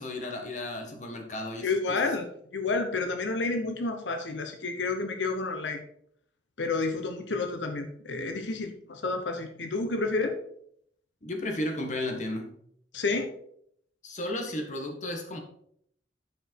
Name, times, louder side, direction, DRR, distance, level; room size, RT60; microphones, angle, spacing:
voice 1, 0.0-2.0 11.2-12.6 14.0-15.4, left 1 dB, 40° left, 2 dB, 1.6 m, -34 dB
voice 2, 1.6-2.3 2.5-5.8 6.6-10.4 12.9-13.3, left 3 dB, 90° left, 5 dB, 0.9 m, -30 dB
9.4 x 5.1 x 4.6 m, 0.68 s
head